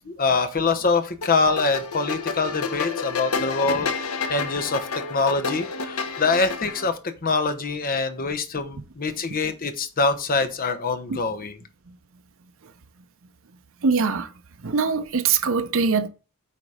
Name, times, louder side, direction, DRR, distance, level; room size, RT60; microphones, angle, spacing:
voice 1, 0.1-11.6, left 4 dB, 40° left, 1.0 m, -24 dB
sound 1, 1.2-6.9, left 4 dB, 75° left, 1.0 m, -30 dB
voice 2, 13.8-14.3 14.6-16.1, right 5 dB, 60° right, 0.7 m, -22 dB
8.6 x 4.1 x 4.9 m
head